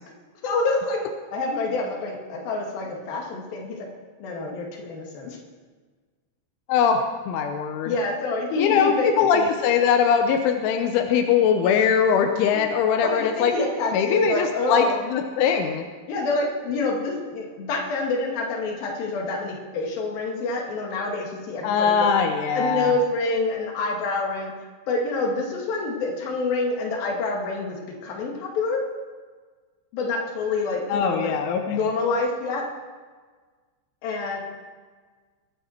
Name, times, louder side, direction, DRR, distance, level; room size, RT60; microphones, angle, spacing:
voice 1, 0.4-1.0 1.3-3.8 4.2-5.4 7.9-9.5 13.0-15.1 16.1-22.1 22.6-24.5 24.9-27.8 28.0-28.8 29.9-31.3 31.7-32.7 34.0-34.4, left 3 dB, 55° left, -1 dB, 3.6 m, -27 dB
voice 2, 6.7-7.9 8.6-13.5 13.9-15.8 21.6-22.9 30.9-31.8, left 7 dB, 85° left, 5 dB, 3.3 m, -21 dB
22.0 x 9.2 x 4.4 m, 1.5 s
omnidirectional pair, 5.4 m